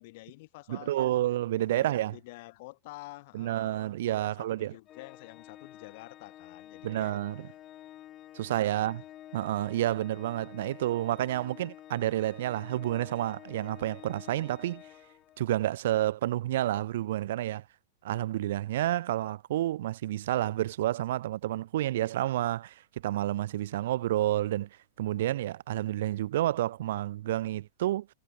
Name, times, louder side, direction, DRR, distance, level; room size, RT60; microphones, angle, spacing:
voice 1, 0.0-1.1 1.6-7.2 8.7-9.0, left 21 dB, 50° left, 5.0 m, -49 dB
voice 2, 0.7-2.1 3.3-4.7 6.8-7.5 8.3-9.0 9.3-14.8 15.4-17.6 18.0-24.7 25.0-28.1, right 14 dB, 65° right, 0.6 m, -30 dB
Organ, 4.9-15.6, left 13 dB, 25° left, 2.8 m, -50 dB
supercardioid pair, 160°, 0 cm